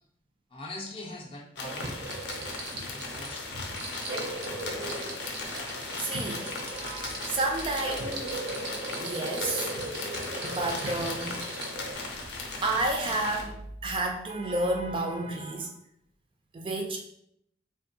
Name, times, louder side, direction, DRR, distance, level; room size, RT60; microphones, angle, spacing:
voice 1, 0.5-2.2 2.8-3.6, left 2 dB, 30° left, 0 dB, 0.5 m, -42 dB
sound 1, 1.6-13.4, left 3 dB, 70° left, 0.6 m, -38 dB
sound 2, 1.6-11.9, right 2 dB, 75° right, 0.6 m, -37 dB
voice 2, 6.0-6.5 6.8-8.4 9.0-9.7 10.4-11.4 11.9-12.1 12.5-15.7 16.5-17.0, right 2 dB, 30° right, 3 dB, 0.3 m, -31 dB
3.6 x 2.5 x 2.7 m, 0.71 s
head